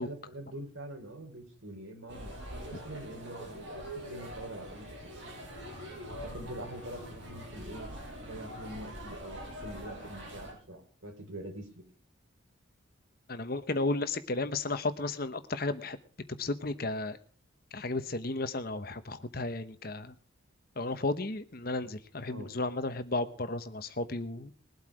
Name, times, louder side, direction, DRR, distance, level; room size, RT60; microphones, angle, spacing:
voice 1, 0.0-5.1 6.0-11.8 22.3-22.5, right 1 dB, 90° right, 3 dB, 4.1 m, -45 dB
sound 1, 2.1-10.5, equal, 65° right, 6.2 m, -44 dB
voice 2, 13.3-16.0 16.4-17.2 17.7-20.1 20.8-24.5, left 2 dB, 45° left, 11 dB, 1.0 m, -33 dB
21.0 x 8.2 x 4.9 m, 0.41 s
head